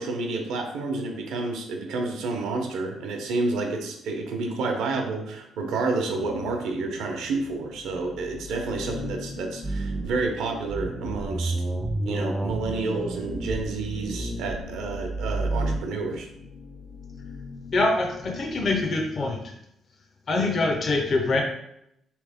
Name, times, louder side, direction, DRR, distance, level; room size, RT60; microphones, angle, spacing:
voice 1, 0.0-11.6 12.1-16.3, right 3 dB, 90° right, 3 dB, 0.7 m, -29 dB
sound 1, 6.1-18.9, left 3 dB, 70° left, 1.3 m, -42 dB
sound 2, 9.6-10.3 10.7-15.8, right 2 dB, 20° right, 0.4 m, -30 dB
voice 2, 17.7-19.4 20.3-21.4, left 2 dB, 50° left, 2 dB, 0.7 m, -24 dB
3.6 x 3.1 x 3.4 m, 0.77 s
cardioid pair, 90°, 0 cm